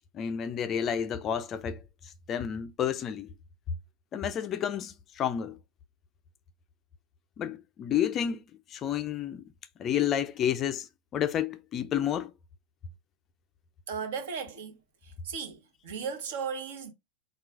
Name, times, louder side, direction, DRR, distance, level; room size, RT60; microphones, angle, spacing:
voice 1, 0.1-1.8 2.3-3.3 4.1-5.6 7.4-8.4 8.7-9.4 9.8-12.3, left 9 dB, 30° left, 0.4 m, -30 dB
voice 2, 13.9-14.7 15.0-16.9, right 6 dB, 55° right, 1.0 m, -36 dB
4.4 x 2.4 x 4.7 m
figure-of-eight pair, 90°, 0 cm